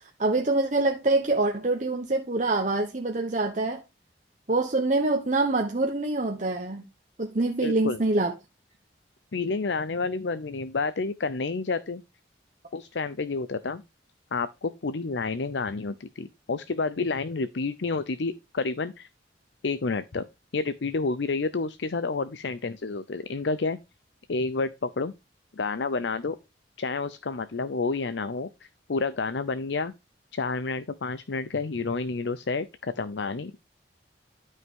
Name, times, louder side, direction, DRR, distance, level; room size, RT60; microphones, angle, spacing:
voice 1, 0.2-3.8 4.5-6.8 7.2-8.3, right 2 dB, 40° right, 1.1 m, -25 dB
voice 2, 7.6-8.0 9.3-12.0 12.7-13.8 14.3-19.1 19.6-20.2 20.5-23.8 24.3-25.1 25.5-26.4 26.8-29.9 30.3-33.6, left 4 dB, 75° left, 0.6 m, -29 dB
12.5 x 5.5 x 3.7 m
head